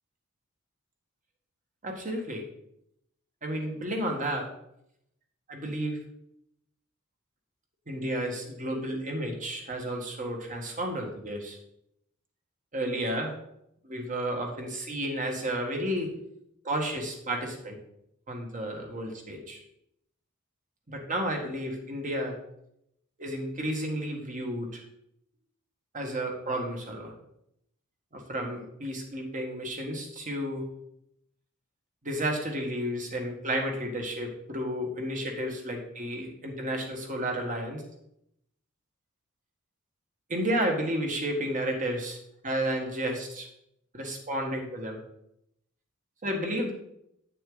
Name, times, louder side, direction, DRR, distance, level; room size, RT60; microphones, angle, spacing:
voice 1, 1.8-2.4 3.4-4.5 5.5-6.0 7.9-11.6 12.7-13.3 13.8-16.1 16.6-17.8 18.3-19.6 20.9-22.4 23.2-24.8 25.9-27.1 28.1-30.7 32.0-37.8 40.3-42.2 42.4-43.5 43.9-45.0 46.2-46.7, right 1 dB, 40° right, 2 dB, 1.6 m, -32 dB
9.0 x 6.6 x 3.9 m, 0.77 s
head